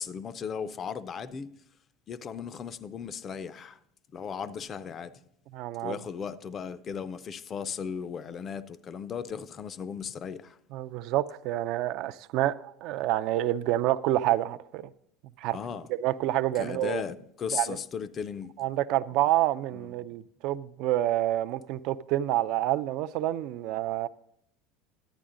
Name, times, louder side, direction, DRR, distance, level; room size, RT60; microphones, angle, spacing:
voice 1, 0.0-1.5 2.1-3.8 4.1-5.1 5.8-10.6 15.5-15.9 16.6-18.5 19.7-19.9, left 7 dB, 25° left, 0.4 m, -36 dB
voice 2, 5.5-6.0 10.7-14.9 15.4-15.6 15.9-17.0 17.5-17.8 18.6-24.1, right 14 dB, 50° right, 0.3 m, -28 dB
11.5 x 9.3 x 3.7 m
cardioid pair, 165°, 0 cm